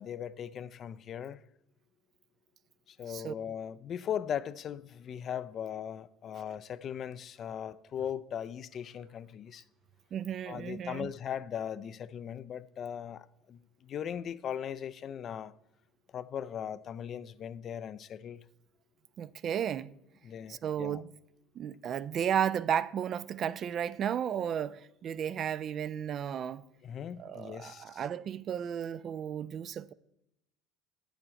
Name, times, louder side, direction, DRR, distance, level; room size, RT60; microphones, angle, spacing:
voice 1, 0.0-1.4 2.9-9.6 10.5-15.5 16.1-18.4 20.2-21.0 26.8-28.0, left 9 dB, 45° left, 0.4 m, -39 dB
voice 2, 10.1-11.1 19.2-19.9 20.5-21.1 21.6-26.6 27.2-29.9, right 9 dB, 45° right, 0.3 m, -33 dB
8.9 x 7.0 x 4.3 m
hypercardioid pair, 70°, 0 cm